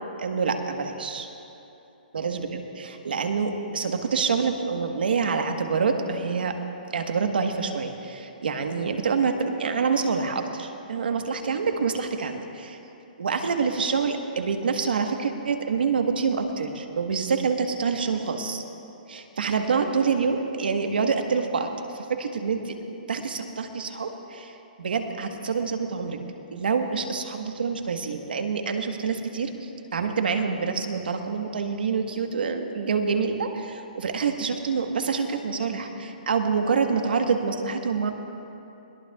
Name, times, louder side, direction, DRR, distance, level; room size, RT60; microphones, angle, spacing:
voice 1, 0.2-1.3 2.1-2.5 2.8-6.6 6.9-12.8 13.2-18.6 19.1-22.8 23.1-26.2 26.5-38.1, right 5 dB, 85° right, 5 dB, 1.3 m, -26 dB
21.5 x 18.5 x 2.4 m, 3.0 s
hypercardioid pair, 170°, 5 cm